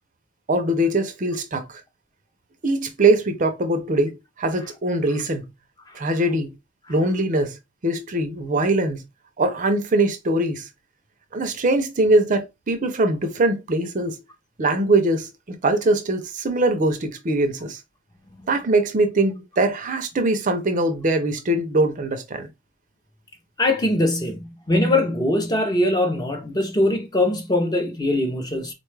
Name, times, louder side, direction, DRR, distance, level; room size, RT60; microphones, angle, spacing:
voice 1, 0.5-1.8 2.6-5.5 5.9-6.5 6.9-7.6 7.8-9.0 9.4-10.7 11.3-14.2 14.6-17.8 18.5-22.5, right 2 dB, 35° right, 0.4 m, -22 dB
voice 2, 23.6-28.7, left 1 dB, 15° left, 0.5 m, -22 dB
4.0 x 2.2 x 3.1 m
head